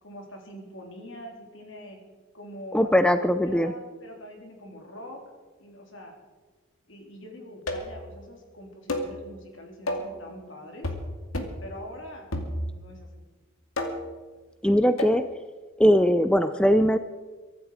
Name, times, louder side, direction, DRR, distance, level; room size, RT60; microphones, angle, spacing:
voice 1, 0.0-2.0 2.3-5.2 5.6-6.1 6.9-10.9 11.6-12.4 12.7-13.3, equal, 65° left, 1 dB, 3.7 m, -43 dB
voice 2, 2.7-3.7 14.6-15.2 15.8-17.0, equal, 5° left, 10 dB, 0.5 m, -20 dB
sound 1, 7.7-8.0 8.9-9.2 9.9-10.2 10.8-11.1 11.3-11.6 12.3-12.9 13.8-14.2 15.0-15.2, left 1 dB, 85° left, 2.4 m, -31 dB
23.5 x 12.0 x 5.0 m, 1.3 s
head